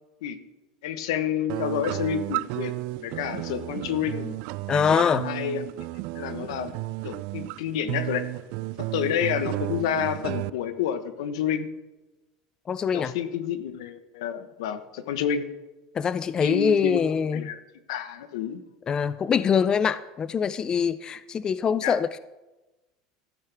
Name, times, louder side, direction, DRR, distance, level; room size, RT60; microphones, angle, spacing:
voice 1, 0.8-2.7 3.0-4.3 4.7-6.7 7.0-8.2 8.8-11.7 12.9-15.4 16.4-17.0 17.3-17.6 17.9-18.6 21.8-22.0, left 8 dB, 85° left, 10 dB, 1.1 m, -29 dB
sound 1, 1.5-10.5, right 20 dB, 65° right, 0.3 m, -33 dB
voice 2, 4.7-5.3 12.7-13.1 15.9-17.5 18.9-22.2, left 7 dB, 25° left, 15 dB, 0.4 m, -24 dB
14.0 x 12.0 x 3.5 m, 1.1 s
supercardioid pair, 120°, 3 cm